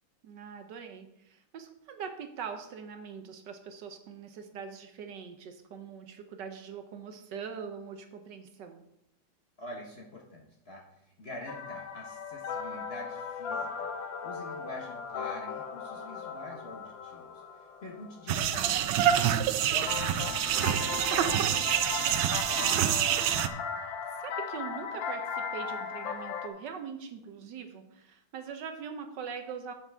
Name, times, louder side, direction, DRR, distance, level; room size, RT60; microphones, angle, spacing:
voice 1, 0.2-8.8 23.8-29.7, right 6 dB, 70° right, 7 dB, 1.3 m, -42 dB
voice 2, 9.6-10.9 11.2-13.9 14.2-17.4 17.8-23.0, left 2 dB, 40° left, -1 dB, 1.0 m, -45 dB
sound 1, 11.5-18.9 19.9-26.5, left 6 dB, 75° left, 1.5 m, -37 dB
sound 2, 18.3-23.5, right 10 dB, 85° right, 1.4 m, -27 dB
9.2 x 7.3 x 3.4 m, 0.83 s
omnidirectional pair, 2.2 m